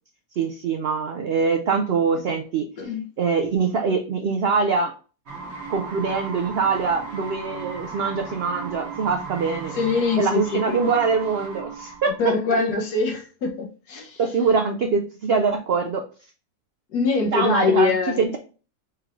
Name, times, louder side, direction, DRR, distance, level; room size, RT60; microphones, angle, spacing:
voice 1, 0.4-2.6 3.2-4.9 5.7-9.7 10.2-12.1 14.2-16.0 17.3-18.4, right 5 dB, 85° right, 0.5 m, -23 dB
voice 2, 2.8-3.1 9.7-10.8 12.2-14.2 16.9-18.4, left 4 dB, 90° left, 1.6 m, -23 dB
sound 1, 5.3-12.2, right 5 dB, 45° right, 1.5 m, -36 dB
4.4 x 3.7 x 3.0 m
omnidirectional pair, 1.6 m